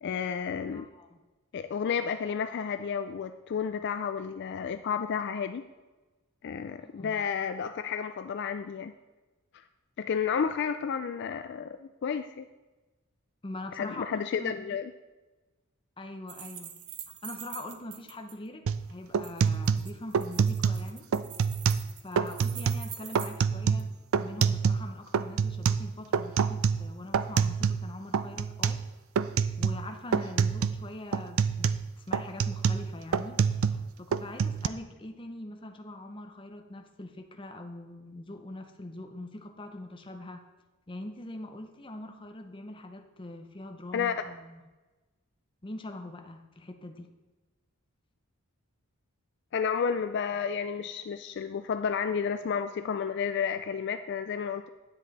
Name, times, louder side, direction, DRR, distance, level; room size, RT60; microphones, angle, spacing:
voice 1, 0.0-0.9 1.5-5.6 6.4-8.9 10.0-12.5 13.8-14.9 43.9-44.2 49.5-54.7, left 6 dB, 55° left, 9 dB, 0.3 m, -31 dB
voice 2, 0.7-1.2 6.8-7.2 13.4-14.7 16.0-16.8 17.2-18.6 18.9-21.1 22.0-23.9 24.2-28.8 29.6-40.4 40.9-44.6 45.6-47.1, left 1 dB, 25° left, 5 dB, 0.7 m, -43 dB
sound 1, 16.3-18.3 19.2-23.4 23.8-23.9, right 10 dB, 85° right, 0.8 m, -45 dB
sound 2, 18.7-18.8 19.1-20.9 21.1-21.9 22.2-22.9 23.2-24.9 25.1-27.9 28.1-28.9 29.2-29.9 30.1-30.8 31.1-33.9 34.1-34.7, right 6 dB, 70° right, 0.4 m, -27 dB
10.0 x 7.9 x 4.1 m, 1.2 s
head